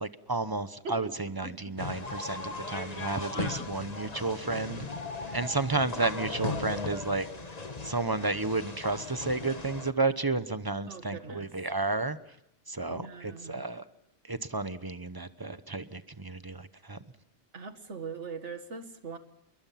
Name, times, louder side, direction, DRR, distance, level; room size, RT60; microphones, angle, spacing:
voice 1, 0.0-4.8 5.3-7.3 7.8-12.2 12.7-13.8 14.2-17.0, right 3 dB, 20° right, 12 dB, 0.9 m, -32 dB
sound 1, 1.8-9.9, left 3 dB, 35° left, 1.5 m, -38 dB
Telephone, 2.0-4.0 4.8-7.9, left 2 dB, 55° left, 2.5 m, -42 dB
voice 2, 10.9-11.5 12.9-13.6 17.5-19.2, right 4 dB, 85° right, 8 dB, 2.1 m, -41 dB
28.5 x 22.0 x 5.8 m, 0.82 s
omnidirectional pair, 1.2 m